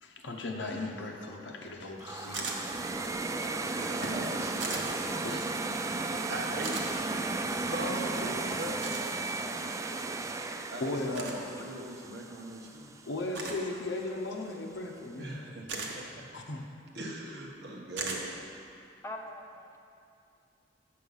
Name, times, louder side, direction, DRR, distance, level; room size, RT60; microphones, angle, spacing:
voice 1, 0.0-3.2 3.6-3.7 4.0-4.1 5.2-5.6 10.8-11.5 13.0-15.5 16.3-16.7, left 2 dB, 75° left, 1 dB, 0.8 m, -37 dB
sound 1, 2.0-13.0, right 3 dB, 15° right, 0.3 m, -35 dB
sound 2, 2.3-2.6 4.6-4.8 6.6-6.9 8.8-9.0 11.1-11.4 13.3-13.6 15.7-15.9 18.0-18.2, right 4 dB, 85° right, 1.1 m, -36 dB
voice 2, 3.6-5.4 6.3-6.7 7.5-8.8 10.7-12.9 15.2-16.2 16.9-18.3, right 1 dB, 65° right, -1 dB, 1.2 m, -40 dB
voice 3, 19.0-19.8, left 1 dB, 15° left, 2 dB, 0.7 m, -44 dB
7.6 x 6.6 x 5.5 m, 2.6 s
head